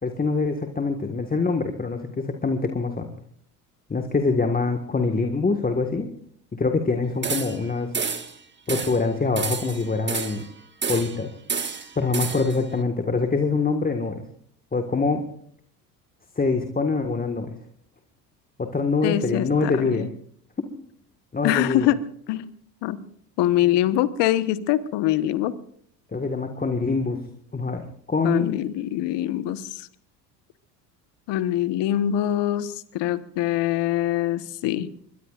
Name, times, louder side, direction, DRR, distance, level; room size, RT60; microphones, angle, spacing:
voice 1, 0.0-3.1 3.9-6.1 6.5-8.0 8.7-10.4 10.9-11.3 11.9-14.2 14.7-15.2 16.3-17.5 18.6-20.1 21.3-21.9 26.1-27.3 27.5-28.5, left 4 dB, 20° left, 5 dB, 1.8 m, -24 dB
sound 1, 7.2-7.7 7.9-8.3 8.7-9.0 9.3-10.5 10.8-11.2 11.5-12.6, right 5 dB, 20° right, 1.8 m, -29 dB
voice 2, 19.0-20.1 21.4-22.0 22.3-22.4 22.8-23.0 23.4-25.5 28.2-29.9 31.3-34.9, left 13 dB, 60° left, 13 dB, 1.4 m, -24 dB
22.5 x 22.0 x 2.5 m, 0.64 s
hypercardioid pair, 70°, 48 cm